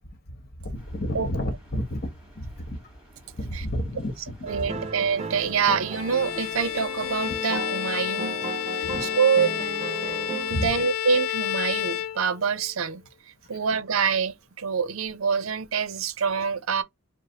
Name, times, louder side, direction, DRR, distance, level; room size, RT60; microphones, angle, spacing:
voice 1, 0.3-2.1 2.3-2.8 3.3-4.8 8.8-9.2 10.0-10.7 13.5-13.6, equal, 50° left, 1.2 m, -32 dB
sound 1, 0.7-7.4, equal, 5° right, 2.5 m, -52 dB
sound 2, 4.5-10.7, right 4 dB, 30° right, 0.7 m, -36 dB
voice 2, 4.5-8.4 9.0-9.5 10.5-13.0 13.5-16.8, right 6 dB, 75° right, 0.6 m, -25 dB
Bowed string instrument, 5.9-12.7, left 11 dB, 80° left, 0.4 m, -30 dB
4.9 x 2.1 x 3.9 m
head